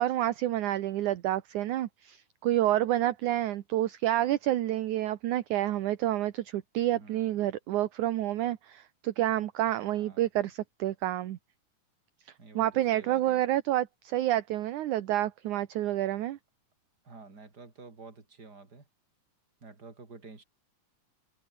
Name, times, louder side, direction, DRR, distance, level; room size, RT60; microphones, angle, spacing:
voice 1, 0.0-11.4 12.5-16.4, right 13 dB, 70° right, 2.4 m, -29 dB
voice 2, 6.9-7.5 9.9-10.2 12.4-13.4 17.0-18.9 19.6-20.4, right 4 dB, 25° right, 4.5 m, -50 dB
omnidirectional pair, 4.0 m